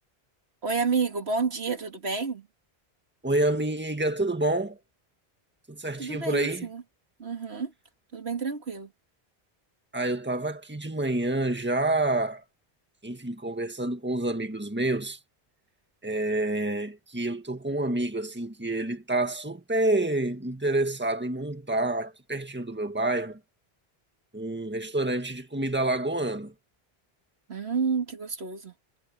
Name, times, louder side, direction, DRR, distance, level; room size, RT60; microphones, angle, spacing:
voice 1, 0.6-2.5 6.0-6.8 7.2-7.7 8.1-8.9 27.5-28.7, right 5 dB, 80° right, 2.3 m, -29 dB
voice 2, 3.2-4.8 5.7-6.7 9.9-12.4 13.0-15.2 16.0-23.4 24.3-26.5, right 2 dB, 10° right, 1.7 m, -28 dB
omnidirectional pair, 1.1 m